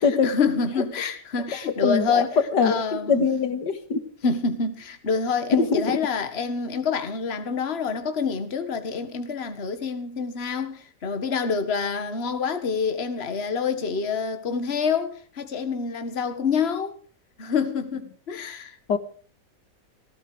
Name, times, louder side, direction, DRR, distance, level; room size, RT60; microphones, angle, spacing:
voice 1, 0.0-2.3 2.6-3.3 4.2-17.0 17.4-18.8, left 5 dB, 35° left, 1.8 m, -27 dB
voice 2, 1.8-2.3 2.5-2.8 3.1-4.0 5.5-6.0 18.9-19.0, left 5 dB, 75° left, 2.2 m, -22 dB
18.0 x 16.0 x 5.0 m
omnidirectional pair, 1.9 m